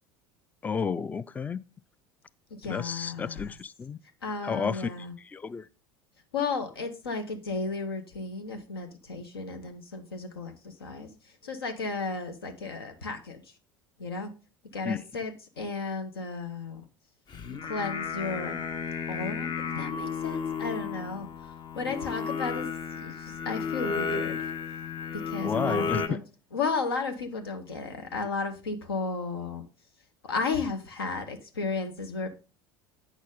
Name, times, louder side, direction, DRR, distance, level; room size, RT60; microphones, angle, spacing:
voice 1, 0.6-1.6 2.6-4.0 4.4-5.6 14.8-15.0 25.4-26.2, left 5 dB, 15° left, 0.3 m, -32 dB
voice 2, 2.6-3.5 4.2-5.1 6.3-11.1 11.4-13.4 14.0-14.3 14.7-16.8 17.6-18.6 19.1-21.3 21.7-23.1 23.4-24.4 25.1-26.2 26.5-29.6 30.2-32.3, left 4 dB, 80° left, 1.1 m, -34 dB
Singing, 17.3-26.1, left 6 dB, 35° left, 0.9 m, -33 dB
8.8 x 6.2 x 3.8 m
figure-of-eight pair, 70°, 12 cm